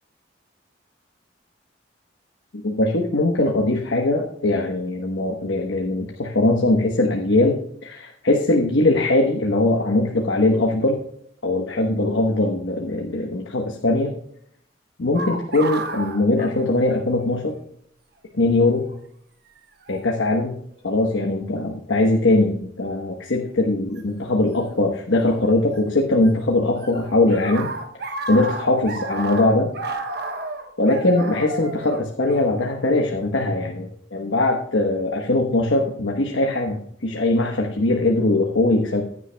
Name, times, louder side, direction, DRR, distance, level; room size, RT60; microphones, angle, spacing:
voice 1, 2.6-11.0 11.4-14.1 15.0-17.5 18.3-18.9 19.9-20.6 20.8-27.7 28.0-29.7 30.8-39.0, left 2 dB, 90° left, 1 dB, 1.1 m, -21 dB
sound 1, 15.1-17.2 17.5-17.6 18.6-18.9 19.9-20.1 20.8-21.3 24.0-24.1 25.4-26.3 26.5-33.1, right 2 dB, 55° right, 1.2 m, -32 dB
15.0 x 9.6 x 2.2 m, 0.70 s
head